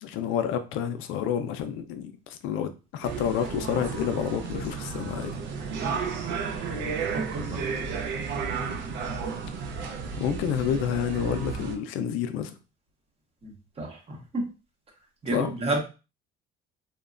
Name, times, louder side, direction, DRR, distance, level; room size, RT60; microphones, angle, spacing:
voice 1, 0.0-5.3 10.2-12.5 15.3-15.5, left 8 dB, 80° left, 0.4 m, -29 dB
sound 1, 3.0-11.8, right 5 dB, 65° right, 0.5 m, -32 dB
voice 2, 7.1-7.7 13.4-14.5 15.2-15.8, right 2 dB, 30° right, 0.8 m, -31 dB
3.1 x 2.1 x 2.4 m
cardioid pair, 140°, 21 cm